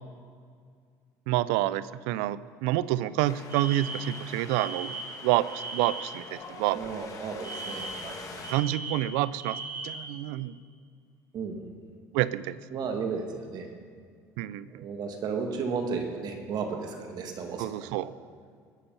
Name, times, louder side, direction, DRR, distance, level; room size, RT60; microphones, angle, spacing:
voice 1, 1.3-5.0 5.2-6.8 8.5-9.6 9.8-10.6 12.1-12.6 14.4-14.8 17.6-18.1, right 15 dB, 80° right, 17 dB, 0.5 m, -28 dB
Wind, 3.2-8.5, left 4 dB, 40° left, 2.1 m, -45 dB
Alarm, 3.5-6.2 7.4-10.1, right 3 dB, 30° right, 4.1 m, -38 dB
voice 2, 6.7-8.4 11.3-11.7 12.7-13.7 14.7-18.1, right 5 dB, 55° right, 4 dB, 2.0 m, -34 dB
20.5 x 6.9 x 5.4 m, 2.1 s
supercardioid pair, 95°, 8 cm